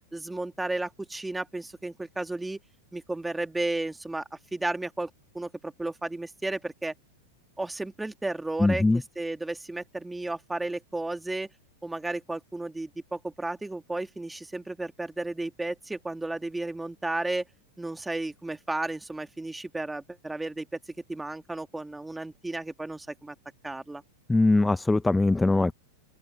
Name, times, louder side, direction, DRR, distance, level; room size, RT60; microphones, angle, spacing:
voice 1, 0.1-2.6 2.9-4.2 4.5-6.9 7.6-8.8 9.2-11.5 11.8-17.4 17.8-20.7 21.1-23.4 23.6-24.0, right 2 dB, 5° right, 1.9 m, -33 dB
voice 2, 8.6-9.0 24.3-25.7, left 2 dB, 10° left, 0.6 m, -21 dB
open air
hypercardioid pair, 115°, 0 cm